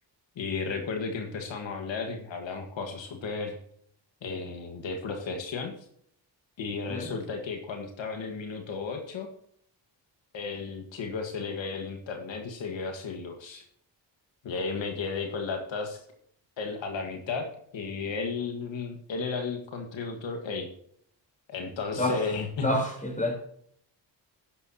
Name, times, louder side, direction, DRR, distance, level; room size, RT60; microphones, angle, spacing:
voice 1, 0.4-3.6 4.2-5.7 6.6-9.3 10.3-13.6 14.4-16.0 16.6-17.5 17.7-20.7 21.5-22.7, left 4 dB, 80° left, 4 dB, 1.9 m, -34 dB
voice 2, 22.6-23.4, left 1 dB, 15° left, 2 dB, 4.4 m, -27 dB
12.0 x 10.5 x 3.0 m, 0.66 s
cardioid pair, 80°, 45 cm